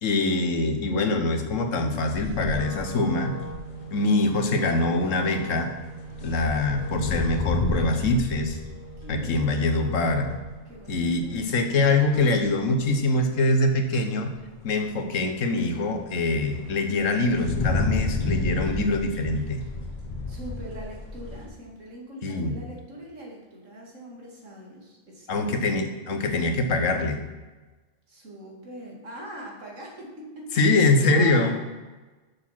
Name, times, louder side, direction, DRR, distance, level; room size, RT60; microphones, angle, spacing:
voice 1, 0.0-3.3 3.9-5.7 6.2-8.6 9.1-10.3 10.9-14.3 14.6-19.6 22.2-22.5 25.3-27.2 30.5-31.5, left 2 dB, 80° left, 6 dB, 1.3 m, -24 dB
sound 1, 2.1-9.7 10.0-11.5 12.2-12.5 12.8-12.9 13.1-13.2 14.5-14.6 15.0-21.5, left 3 dB, 40° left, 1.3 m, -32 dB
Wind instrument woodwind instrument, 2.4-10.6, right 2 dB, 60° left, 1.7 m, -40 dB
voice 2, 9.0-9.7 10.7-11.4 20.3-25.5 28.1-30.7 31.0-31.5, right 1 dB, 75° right, -2 dB, 2.4 m, -42 dB
6.8 x 6.7 x 5.7 m, 1.2 s
omnidirectional pair, 1.3 m